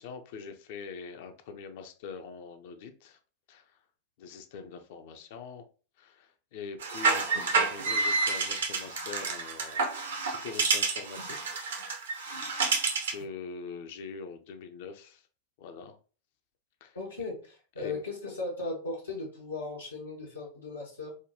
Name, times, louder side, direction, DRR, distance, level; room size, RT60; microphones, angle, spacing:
voice 1, 0.0-3.2 3.5-3.7 4.2-5.6 6.0-9.8 10.2-11.6 12.3-12.7 13.1-15.2 15.6-16.0 16.8-17.0 17.8-18.0, left 5 dB, 50° left, 7 dB, 0.5 m, -43 dB
sound 1, 6.8-13.2, right 4 dB, 65° right, 0.8 m, -29 dB
voice 2, 16.9-21.1, left 3 dB, 80° left, -4 dB, 1.0 m, -37 dB
4.9 x 2.2 x 2.7 m, 0.37 s
figure-of-eight pair, 90°, 0 cm